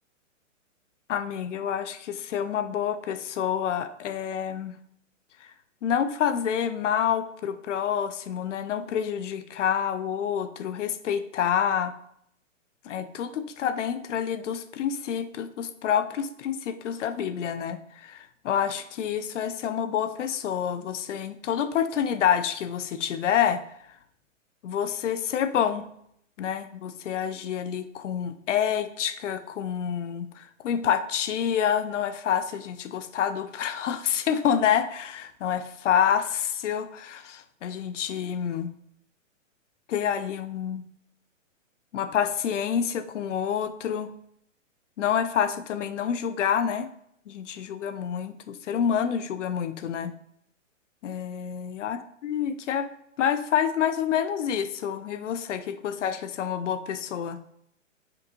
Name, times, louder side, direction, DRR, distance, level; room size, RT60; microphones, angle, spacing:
voice 1, 1.1-4.8 5.8-11.9 12.8-23.6 24.6-25.9 26.4-38.7 39.9-40.8 41.9-44.1 45.0-46.9 47.3-50.1 51.0-52.9 53.2-57.4, left 8 dB, 70° left, 11 dB, 0.5 m, -28 dB
5.2 x 2.7 x 2.7 m, 0.70 s
hypercardioid pair, 160°, 39 cm